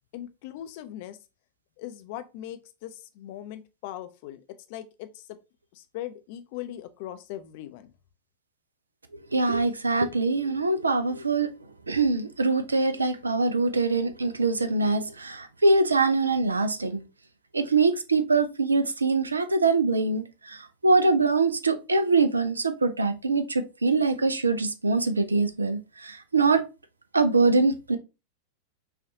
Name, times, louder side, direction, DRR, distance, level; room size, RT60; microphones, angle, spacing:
voice 1, 0.1-1.2 1.8-4.4 4.7-5.4 5.7-7.9, left 12 dB, 50° left, 0.5 m, -39 dB
voice 2, 9.3-11.5 11.9-17.0 17.5-26.6 27.1-28.0, right 3 dB, 75° right, 0.4 m, -23 dB
5.7 x 2.4 x 2.7 m
figure-of-eight pair, 90°, 0 cm